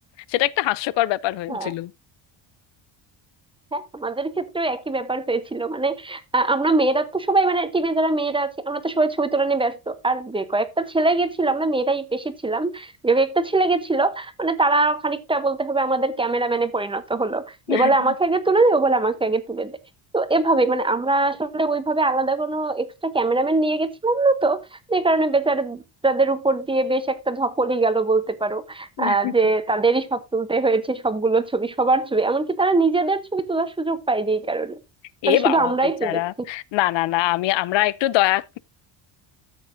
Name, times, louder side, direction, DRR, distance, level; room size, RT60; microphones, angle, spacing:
voice 1, 0.3-1.9 17.7-17.9 29.0-29.3 35.2-35.7 36.0-38.6, left 16 dB, 70° left, 0.6 m, -23 dB
voice 2, 3.7-19.8 20.1-34.8 35.3-36.2, right 3 dB, 10° right, 0.8 m, -22 dB
13.5 x 8.0 x 2.5 m
cardioid pair, 160°, 46 cm